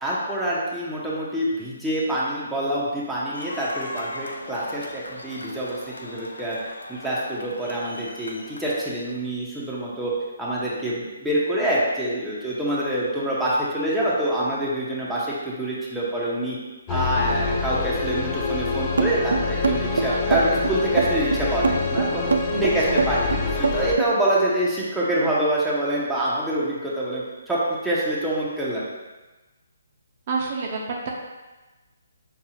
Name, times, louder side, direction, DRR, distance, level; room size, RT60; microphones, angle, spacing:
voice 1, 0.0-6.6 6.9-10.1 10.4-16.6 16.9-22.2 22.5-28.8, right 1 dB, 5° right, -9 dB, 0.7 m, -26 dB
sound 1, 3.3-8.9, left 1 dB, 85° left, 0.5 m, -39 dB
sound 2, 16.9-23.9, left 4 dB, 25° left, 0.4 m, -26 dB
sound 3, 19.0-24.1, right 4 dB, 75° right, 0.3 m, -23 dB
voice 2, 20.1-20.5 22.6-23.0 30.3-31.1, right 4 dB, 45° right, -1 dB, 0.6 m, -30 dB
5.4 x 2.4 x 2.8 m, 1.2 s
hypercardioid pair, 145°, 0 cm